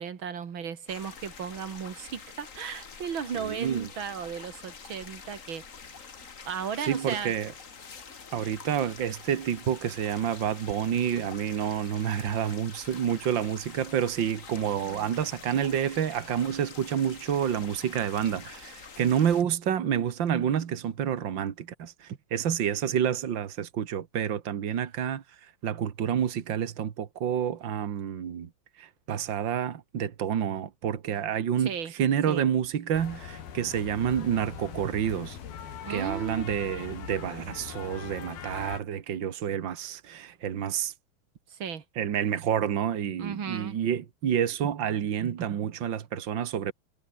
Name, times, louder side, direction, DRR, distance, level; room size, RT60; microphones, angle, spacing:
voice 1, 0.0-5.6 6.5-7.3 14.8-15.1 31.6-31.9 32.3-32.5 35.8-36.5 41.5-41.8 43.2-43.8, right 7 dB, 40° right, 2.0 m, -35 dB
sound 1, 0.9-19.4, left 5 dB, 90° left, 0.7 m, -46 dB
voice 2, 3.4-3.9 6.8-7.5 8.3-25.2 25.6-28.5 28.8-31.7 32.0-35.4 35.9-40.9 42.0-46.7, right 9 dB, 75° right, 1.0 m, -29 dB
sound 2, 32.9-38.8, left 8 dB, 70° left, 4.7 m, -41 dB
omnidirectional pair, 4.5 m